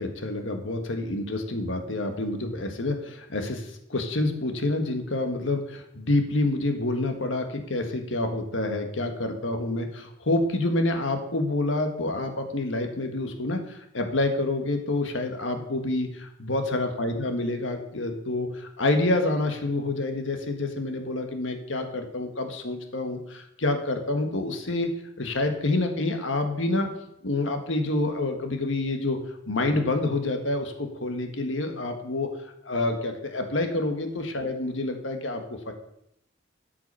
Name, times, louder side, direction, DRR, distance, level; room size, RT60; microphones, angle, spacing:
voice 1, 0.0-24.9 25.2-26.9 27.2-29.2 29.5-32.3 32.6-35.7, left 2 dB, 80° left, 5 dB, 1.6 m, -28 dB
13.0 x 6.0 x 5.6 m, 0.79 s
head